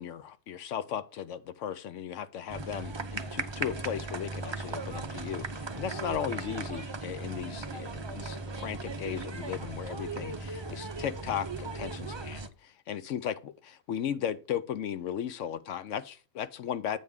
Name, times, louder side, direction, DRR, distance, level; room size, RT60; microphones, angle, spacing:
voice 1, 0.0-17.0, left 9 dB, 65° left, 0.9 m, -36 dB
sound 1, 2.5-12.5, right 3 dB, 45° right, 0.3 m, -37 dB
8.6 x 3.5 x 6.5 m
omnidirectional pair, 1.5 m